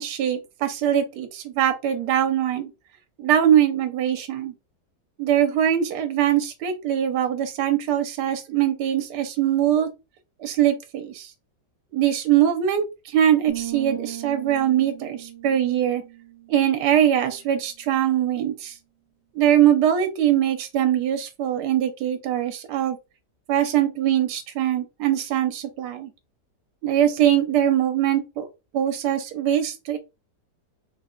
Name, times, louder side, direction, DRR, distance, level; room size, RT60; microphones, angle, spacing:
voice 1, 0.0-2.7 3.2-4.5 5.2-9.9 10.4-11.3 11.9-16.0 16.5-18.8 19.3-23.0 23.5-26.1 26.8-28.5 28.7-30.0, right 10 dB, 80° right, 8 dB, 1.2 m, -22 dB
sound 1, 13.5-17.2, right 12 dB, 55° right, 0.8 m, -37 dB
3.3 x 2.1 x 3.6 m, 0.26 s
omnidirectional pair, 1.8 m